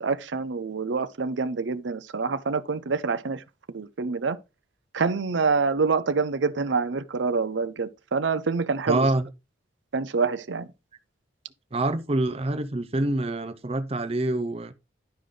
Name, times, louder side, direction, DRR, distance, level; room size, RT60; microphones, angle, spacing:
voice 1, 0.0-3.4 3.7-4.4 4.9-9.1 9.9-10.7, right 4 dB, 75° right, 0.6 m, -26 dB
voice 2, 8.9-9.3 11.7-14.7, right 2 dB, 30° right, 0.6 m, -26 dB
11.5 x 5.1 x 3.8 m
head